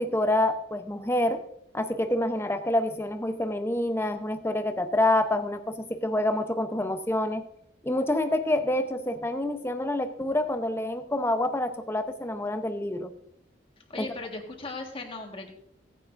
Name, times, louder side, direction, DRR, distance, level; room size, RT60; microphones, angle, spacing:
voice 1, 0.0-1.4 1.7-7.4 7.8-13.1 14.0-14.1, left 1 dB, 15° left, 8 dB, 0.8 m, -27 dB
voice 2, 13.9-15.5, left 3 dB, 30° left, 3 dB, 1.6 m, -37 dB
17.0 x 9.7 x 2.6 m, 0.76 s
head